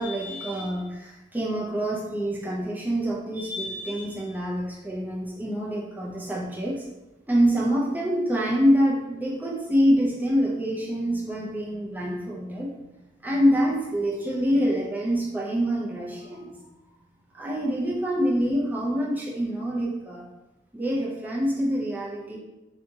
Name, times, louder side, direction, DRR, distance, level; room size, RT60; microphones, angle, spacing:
voice 1, 0.0-6.8 7.3-12.9 13.2-16.6 17.3-20.2 20.7-22.4, equal, 10° right, -4 dB, 0.5 m, -26 dB
2.8 x 2.7 x 3.5 m, 1.0 s
head